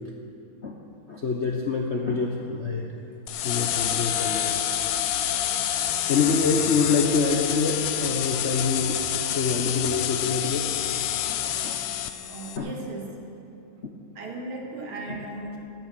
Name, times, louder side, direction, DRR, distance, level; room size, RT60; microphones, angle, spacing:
voice 1, 1.1-2.9 3.4-4.6 6.1-9.0 9.3-10.6 11.3-11.7 12.6-12.7 15.1-15.2, left 4 dB, 50° left, 0 dB, 0.8 m, -26 dB
sound 1, 3.3-12.6, left 10 dB, 85° left, 1.6 m, -27 dB
voice 2, 12.3-13.2 13.7-15.6, right 2 dB, 70° right, 0 dB, 2.6 m, -37 dB
17.5 x 9.0 x 6.1 m, 2.7 s
omnidirectional pair, 2.4 m